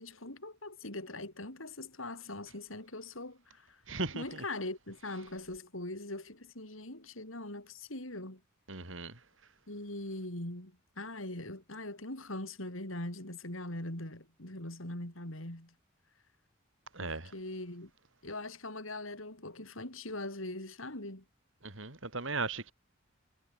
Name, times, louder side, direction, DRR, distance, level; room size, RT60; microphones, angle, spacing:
voice 1, 0.0-3.8 4.1-8.4 9.7-15.7 17.0-17.9 18.2-21.2, left 2 dB, 80° left, 6.7 m, -41 dB
voice 2, 3.9-4.4 8.7-9.2 16.9-17.3 21.6-22.7, right 3 dB, 70° right, 4.7 m, -37 dB
head